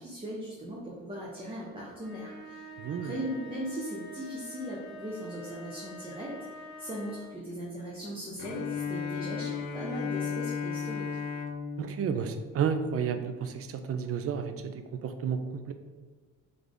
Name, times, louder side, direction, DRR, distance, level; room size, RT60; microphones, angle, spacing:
voice 1, 0.0-2.7 3.0-6.3 6.8-11.1, equal, 20° right, -5 dB, 0.9 m, -38 dB
sound 1, 1.9-7.4, equal, ahead, 1.5 m, -46 dB
voice 2, 2.8-3.1 11.8-15.7, right 7 dB, 50° right, 9 dB, 0.5 m, -32 dB
Bowed string instrument, 8.4-13.3, left 6 dB, 75° left, 0.5 m, -35 dB
3.4 x 3.4 x 3.8 m, 1.4 s
cardioid pair, 90°, 30 cm